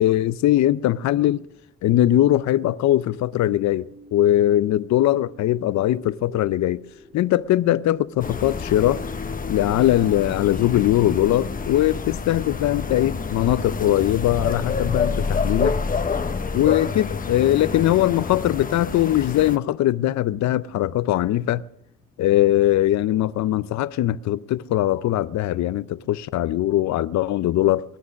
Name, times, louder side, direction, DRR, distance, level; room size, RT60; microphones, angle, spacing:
voice 1, 0.0-1.4 1.8-6.8 7.1-9.0 9.5-15.8 16.5-21.6 22.2-27.8, left 13 dB, 65° left, 0.6 m, -21 dB
sound 1, 2.1-9.2, right 1 dB, 85° right, 4.5 m, -49 dB
sound 2, 8.2-19.6, left 5 dB, 30° left, 0.9 m, -28 dB
22.5 x 9.8 x 6.3 m
cardioid pair, 90°, 30 cm